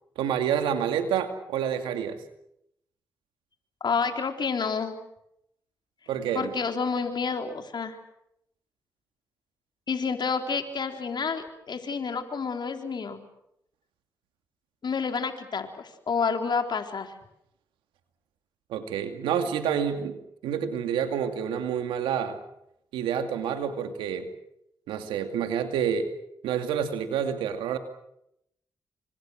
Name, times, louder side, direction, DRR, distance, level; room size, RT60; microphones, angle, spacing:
voice 1, 0.2-2.2 6.1-6.5 18.7-20.2 20.4-22.4 22.9-24.3 24.9-26.1 26.4-27.8, right 8 dB, 90° right, 7 dB, 2.4 m, -28 dB
voice 2, 3.8-4.9 6.3-8.0 9.9-13.2 14.8-17.1, left 5 dB, 60° left, 6 dB, 3.8 m, -29 dB
29.5 x 25.5 x 6.4 m, 0.78 s
supercardioid pair, 40°, 9 cm